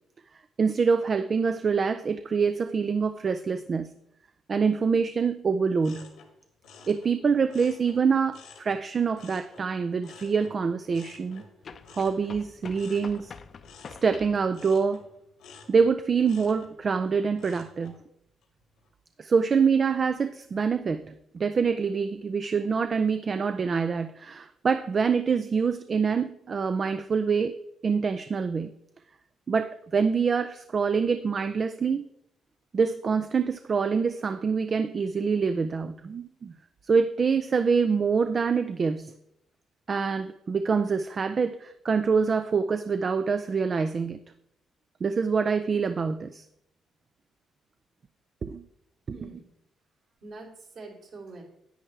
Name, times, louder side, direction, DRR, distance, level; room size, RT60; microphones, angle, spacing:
voice 1, 0.6-3.9 4.5-6.1 6.9-11.4 11.9-13.3 14.0-15.0 15.7-17.9 19.2-28.7 29.5-32.1 32.7-36.5 36.9-39.1 39.9-44.2 45.0-46.4 48.4-48.6 49.1-49.3, right 5 dB, 40° right, 0.4 m, -25 dB
sound 1, 5.8-8.8 9.1-18.0 18.4-18.9, left 5 dB, 85° left, 1.7 m, -52 dB
sound 2, 9.2-9.3 11.6-14.5, left 5 dB, 50° left, 0.6 m, -46 dB
voice 2, 49.1-49.4 50.2-51.4, right 3 dB, 60° right, 3.3 m, -44 dB
10.0 x 8.7 x 3.3 m
cardioid pair, 90°, 0 cm